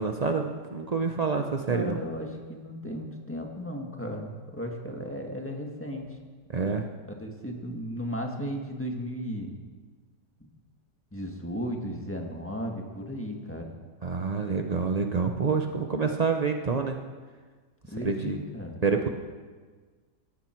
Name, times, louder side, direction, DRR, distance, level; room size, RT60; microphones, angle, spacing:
voice 1, 0.0-2.0 6.5-6.9 14.0-17.0 18.0-18.4 18.8-19.1, right 5 dB, 75° right, 4 dB, 0.3 m, -27 dB
voice 2, 1.7-6.2 7.1-9.5 11.1-13.7 17.9-18.8, equal, 10° left, 1 dB, 1.6 m, -35 dB
18.0 x 14.5 x 4.5 m, 1.5 s
omnidirectional pair, 1.9 m